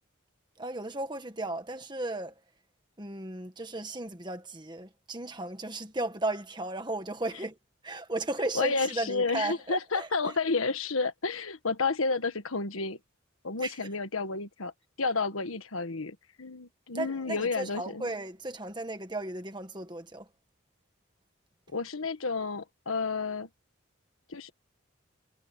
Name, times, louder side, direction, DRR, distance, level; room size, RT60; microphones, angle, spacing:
voice 1, 0.6-2.3 3.0-7.6 7.8-10.1 13.6-13.8 16.9-20.3, right 2 dB, 20° right, 1.6 m, -35 dB
voice 2, 8.5-13.0 13.4-14.7 15.0-18.1 21.7-23.5 24.3-24.5, left 4 dB, 85° left, 1.4 m, -31 dB
head